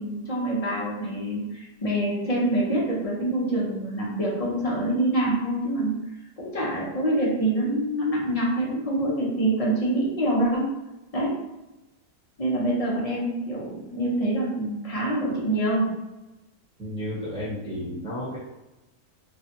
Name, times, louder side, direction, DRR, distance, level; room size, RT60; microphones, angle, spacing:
voice 1, 0.0-5.9 6.4-10.7 11.1-11.3 12.4-15.9, right 1 dB, 45° left, -5 dB, 0.5 m, -25 dB
voice 2, 16.8-18.4, equal, 5° left, -8 dB, 0.9 m, -32 dB
3.3 x 2.2 x 2.8 m, 1.0 s
omnidirectional pair, 1.6 m